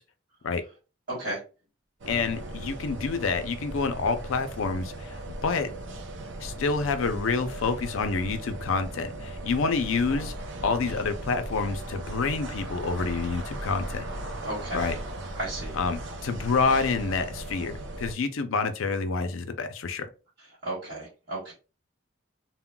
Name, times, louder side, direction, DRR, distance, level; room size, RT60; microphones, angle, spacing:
voice 1, 1.1-1.4 14.4-15.0 15.3-15.8 20.6-21.5, right 1 dB, 45° right, 1.3 m, -34 dB
sound 1, 2.0-18.1, right 1 dB, 65° right, 0.5 m, -37 dB
voice 2, 2.1-5.7 6.4-10.3 10.6-14.0 14.7-14.9 15.7-20.1, left 4 dB, 85° left, 0.5 m, -28 dB
3.7 x 2.1 x 2.2 m
head